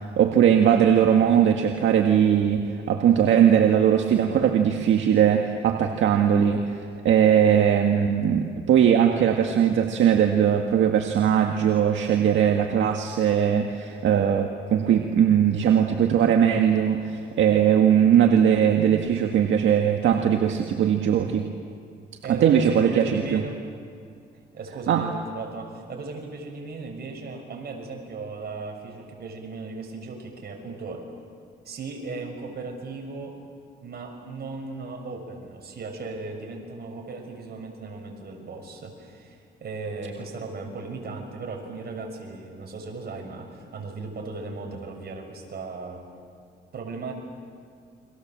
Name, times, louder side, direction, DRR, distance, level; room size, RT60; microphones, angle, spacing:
voice 1, 0.0-21.5 22.3-23.4 24.9-25.1, right 8 dB, 75° right, 3 dB, 1.8 m, -20 dB
voice 2, 22.2-23.6 24.5-31.0 31.6-33.4 33.8-46.0 46.7-47.1, right 3 dB, 55° right, 2 dB, 6.4 m, -36 dB
30.0 x 24.5 x 7.6 m, 2.2 s
cardioid pair, 90°, 20 cm